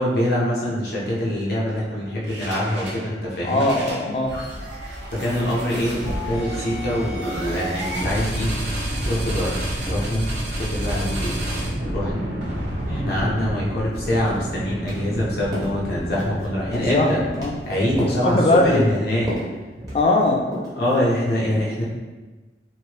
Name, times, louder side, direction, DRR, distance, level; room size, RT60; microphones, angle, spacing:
voice 1, 0.0-3.7 5.1-8.5 9.0-9.6 9.9-10.3 10.6-11.4 11.9-12.2 12.9-17.2 17.6-19.3 20.8-21.8, left 1 dB, 60° left, -6 dB, 0.8 m, -24 dB
sound 1, 2.2-3.0 3.4-20.3, equal, 80° right, 0.7 m, -30 dB
voice 2, 3.4-4.3 16.7-17.1 17.4-17.5 18.2-18.9 19.9-20.4, left 2 dB, 35° left, 1 dB, 0.4 m, -19 dB
sound 2, 13.8-14.0 14.3-14.5 14.9-15.0 15.5-15.8 16.1-16.5 16.7-17.0 17.3-17.6 18.0-18.2 18.6-18.8 19.3-19.5 19.9-20.2 20.5-20.8, equal, 20° right, 0.9 m, -31 dB
3.0 x 2.7 x 2.9 m, 1.3 s
head